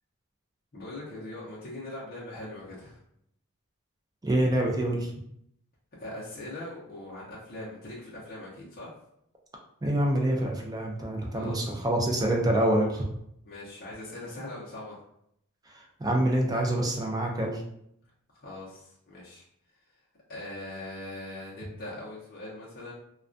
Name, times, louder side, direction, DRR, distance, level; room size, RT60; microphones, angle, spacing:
voice 1, 0.7-3.0 6.0-8.9 11.3-11.8 13.4-15.0 18.3-19.4 20.3-22.9, left 1 dB, 40° left, -7 dB, 0.6 m, -41 dB
voice 2, 4.2-5.1 9.8-13.0 16.0-17.6, right 1 dB, 15° right, 0 dB, 0.4 m, -26 dB
2.2 x 2.2 x 2.5 m, 0.73 s
head